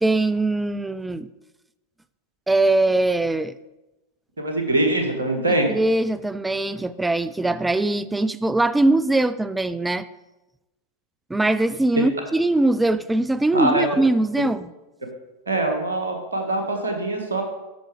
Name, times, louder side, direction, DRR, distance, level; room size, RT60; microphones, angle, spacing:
voice 1, 0.0-1.3 2.5-3.5 5.5-10.1 11.3-14.7, right 2 dB, 5° right, 14 dB, 0.3 m, -21 dB
voice 2, 4.4-5.7 13.5-13.9 15.5-17.4, right 2 dB, 75° right, 3 dB, 1.7 m, -23 dB
8.9 x 6.1 x 4.9 m, 1.0 s
figure-of-eight pair, 90°, 0 cm